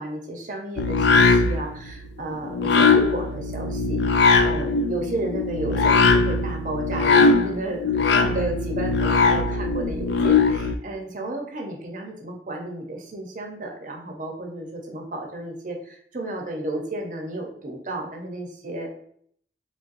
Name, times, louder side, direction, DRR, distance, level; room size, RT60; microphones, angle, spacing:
voice 1, 0.0-18.9, right 1 dB, 45° right, 1 dB, 0.8 m, -32 dB
sound 1, 0.8-10.7, left 4 dB, 70° left, 0.4 m, -20 dB
4.0 x 3.3 x 2.6 m, 0.63 s
head